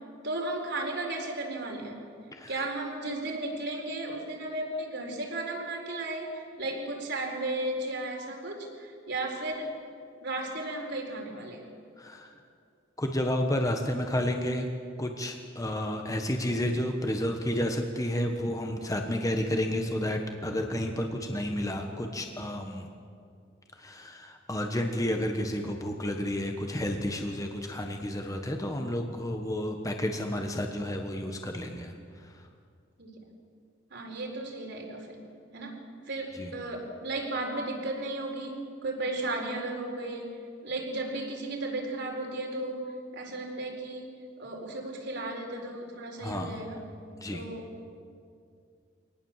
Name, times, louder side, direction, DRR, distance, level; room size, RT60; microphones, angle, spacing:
voice 1, 0.2-2.0 2.5-9.7 10.2-11.7 33.0-33.1 33.9-35.2 35.5-35.8 36.1-40.4 40.6-42.8 43.1-44.1 44.4-46.8 47.3-47.7, right 2 dB, 65° right, 1 dB, 4.4 m, -34 dB
voice 2, 2.3-2.7 12.0-12.4 13.0-14.7 15.0-22.9 23.7-31.9 32.2-32.5 36.3-36.5 46.2-46.6 47.2-47.4, left 1 dB, 20° left, 3 dB, 1.4 m, -31 dB
24.0 x 19.0 x 7.4 m, 2.3 s
head